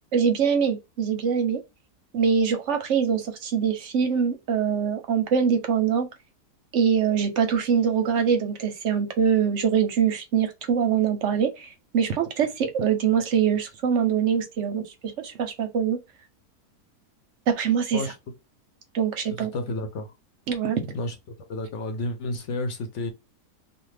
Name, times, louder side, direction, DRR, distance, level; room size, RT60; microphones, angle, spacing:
voice 1, 0.1-1.6 2.1-6.1 6.7-16.0 17.5-18.0 18.9-19.5 20.5-20.8, right 7 dB, 60° right, 0.8 m, -23 dB
voice 2, 19.3-20.1 20.9-21.1 21.5-23.1, left 2 dB, 55° left, 0.9 m, -31 dB
2.5 x 2.5 x 3.2 m
omnidirectional pair, 1.7 m